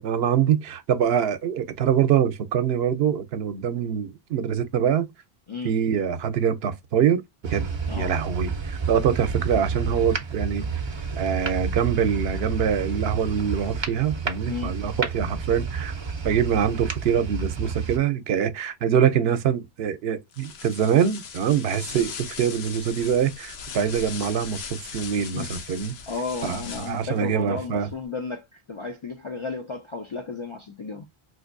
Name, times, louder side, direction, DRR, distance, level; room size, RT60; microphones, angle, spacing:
voice 1, 0.0-5.1 5.6-7.2 7.5-7.7 7.9-10.6 11.2-16.0 16.2-26.0 26.4-27.9, right 8 dB, 75° right, 0.8 m, -24 dB
sound 1, 7.4-18.0, right 5 dB, 35° right, 0.5 m, -30 dB
voice 2, 14.4-14.8 25.2-25.5 26.1-31.1, left 4 dB, 50° left, 0.3 m, -33 dB
sound 2, 20.3-27.2, left 6 dB, 85° left, 0.9 m, -39 dB
3.9 x 2.6 x 2.5 m
omnidirectional pair, 1.0 m